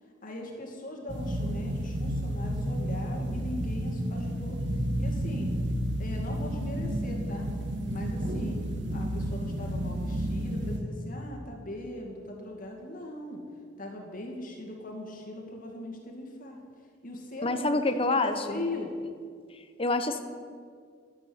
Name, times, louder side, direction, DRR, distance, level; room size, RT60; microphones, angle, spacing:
voice 1, 0.2-4.6 5.0-5.5 6.0-7.5 7.9-8.6 8.9-13.4 13.8-16.6 17.0-17.7 18.2-18.9, left 1 dB, 45° left, 0 dB, 2.2 m, -40 dB
sound 1, 1.1-10.8, equal, 65° right, 1.8 m, -31 dB
voice 2, 17.4-18.6 19.8-20.2, left 2 dB, 30° left, 8 dB, 0.9 m, -27 dB
13.0 x 8.3 x 8.0 m, 2.1 s
head